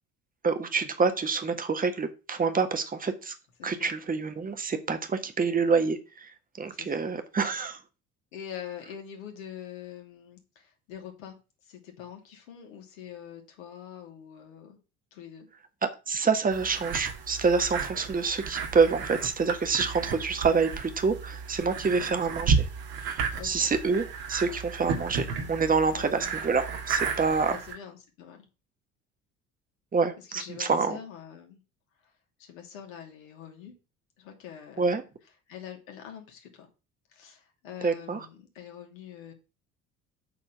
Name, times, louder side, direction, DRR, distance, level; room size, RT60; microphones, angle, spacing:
voice 1, 0.4-3.3 3.6-6.3 6.6-7.8 16.1-22.7 23.0-27.6 29.9-31.0 34.8-35.0 37.8-38.2, right 5 dB, 20° right, 8 dB, 1.5 m, -27 dB
voice 2, 3.6-3.9 6.7-7.1 8.3-11.4 11.6-14.8 15.1-15.5 20.0-20.2 21.8-22.1 23.3-23.7 25.9-26.4 27.4-28.5 30.2-31.6 32.0-32.1 32.4-33.7 34.2-35.0 35.5-36.7 37.1-39.3, left 9 dB, 65° left, 3 dB, 2.7 m, -44 dB
sound 1, 16.5-27.8, right 6 dB, 55° right, 2.0 m, -33 dB
8.3 x 4.4 x 6.8 m, 0.30 s
figure-of-eight pair, 60°, 43 cm